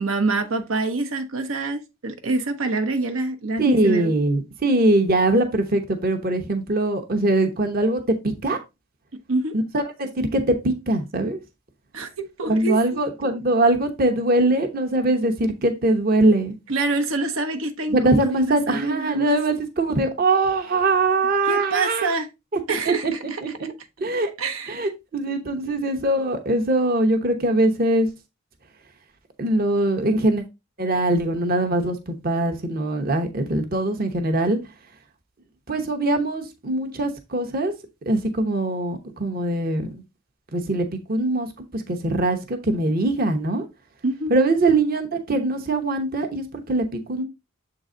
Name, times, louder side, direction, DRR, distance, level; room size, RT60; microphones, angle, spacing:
voice 1, 0.0-4.1 9.3-9.5 11.9-12.1 12.4-13.3 16.7-19.4 21.4-22.3 22.7-23.4 24.4-24.8 44.0-44.3, right 3 dB, 80° right, 1.0 m, -26 dB
voice 2, 3.6-8.6 9.5-11.4 12.5-16.6 17.9-22.1 22.5-22.6 22.9-23.1 23.4-23.7 24.0-24.3 24.7-28.1 29.4-30.4 30.8-34.6 35.7-37.7 38.1-40.0 40.5-41.5 41.7-43.7 44.3-47.2, right 2 dB, 45° right, 0.9 m, -22 dB
7.4 x 3.9 x 3.7 m
head